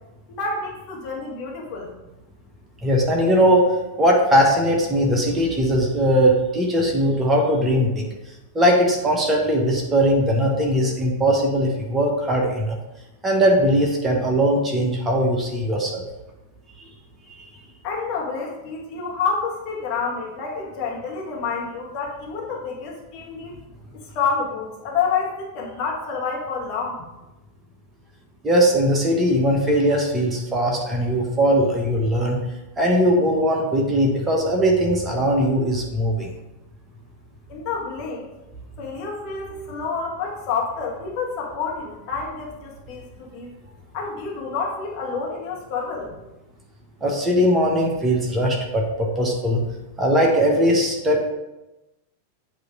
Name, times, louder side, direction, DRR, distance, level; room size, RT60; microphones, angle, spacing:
voice 1, 0.3-1.9 17.8-23.5 23.9-27.0 37.5-38.3 38.8-43.5 43.9-46.2, left 5 dB, 40° left, -2 dB, 1.5 m, -28 dB
voice 2, 2.8-3.7 4.0-8.0 8.5-12.8 13.2-16.1 28.4-32.4 32.8-36.3 47.0-49.6 50.0-51.3, equal, 15° right, 0 dB, 1.2 m, -20 dB
8.0 x 3.1 x 4.9 m, 1.0 s
figure-of-eight pair, 90°, 0 cm